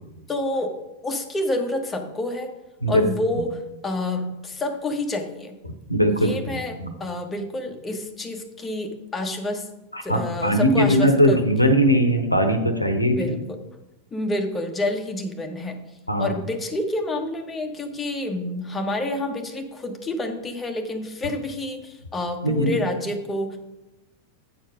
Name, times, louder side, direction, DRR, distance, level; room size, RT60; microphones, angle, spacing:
voice 1, 0.3-0.7 1.0-2.5 2.9-5.5 6.2-9.7 10.0-11.4 13.2-13.6 14.1-15.8 16.2-23.6, left 2 dB, 15° left, 4 dB, 1.2 m, -28 dB
voice 2, 5.9-6.9 9.9-13.2 16.1-16.3 22.4-22.8, equal, 85° left, 7 dB, 1.0 m, -20 dB
8.4 x 4.4 x 6.3 m, 0.94 s
figure-of-eight pair, 90°, 0 cm